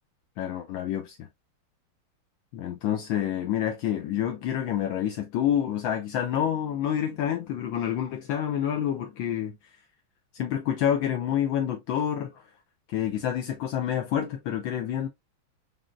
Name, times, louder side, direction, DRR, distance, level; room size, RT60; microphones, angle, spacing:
voice 1, 0.4-1.3 2.5-9.6 10.3-12.4 12.9-15.1, left 10 dB, 75° left, 1.3 m, -28 dB
5.1 x 2.7 x 2.3 m
omnidirectional pair, 2.4 m